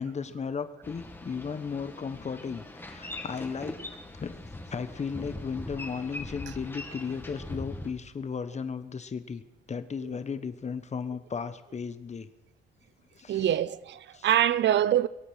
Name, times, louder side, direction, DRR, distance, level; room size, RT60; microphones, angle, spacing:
voice 1, 0.0-3.8 4.2-9.4 9.7-12.3 13.1-13.5 14.1-14.3, left 6 dB, 35° left, 1.2 m, -35 dB
Boat Water vehicle, 0.8-7.9, left 2 dB, 10° left, 2.3 m, -41 dB
voice 2, 13.3-15.1, right 11 dB, 65° right, 0.7 m, -24 dB
23.0 x 8.6 x 6.5 m
cardioid pair, 90°, 20 cm